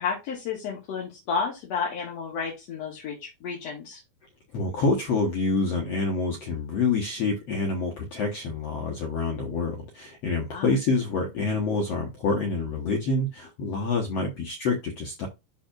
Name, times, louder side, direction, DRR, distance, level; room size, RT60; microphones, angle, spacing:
voice 1, 0.0-4.0 10.5-10.7, left 5 dB, 50° left, 2.5 m, -31 dB
voice 2, 4.5-15.3, left 3 dB, 65° left, 1.6 m, -27 dB
12.0 x 4.2 x 2.5 m
omnidirectional pair, 4.5 m